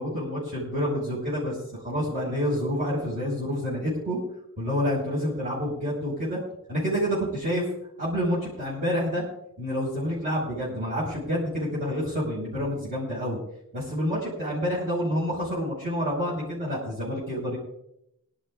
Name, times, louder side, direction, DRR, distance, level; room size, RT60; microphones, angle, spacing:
voice 1, 0.0-1.6 1.8-4.2 4.6-6.4 6.7-7.7 8.0-9.2 9.6-13.4 13.7-17.6, equal, 40° right, -6 dB, 5.6 m, -28 dB
23.0 x 12.0 x 2.5 m, 0.79 s
head